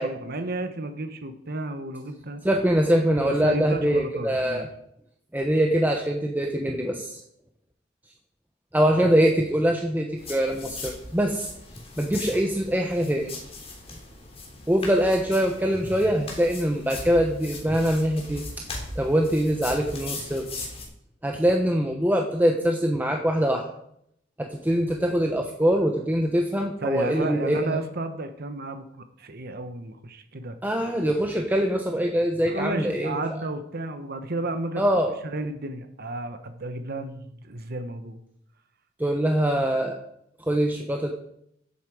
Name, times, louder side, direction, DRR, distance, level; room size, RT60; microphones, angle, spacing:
voice 1, 0.0-2.4 3.2-4.7 26.8-30.6 32.4-34.8 35.2-38.2, right 2 dB, 55° right, 8 dB, 1.1 m, -32 dB
voice 2, 2.4-4.7 5.3-7.2 8.7-11.5 12.0-13.3 14.7-18.4 19.0-20.5 21.2-23.6 24.4-27.8 30.6-33.2 34.8-35.1 39.0-40.0 40.4-41.1, equal, 10° right, 2 dB, 0.9 m, -23 dB
sound 1, 10.2-20.8, left 2 dB, 30° left, 3.3 m, -39 dB
14.5 x 8.3 x 4.9 m, 0.75 s
head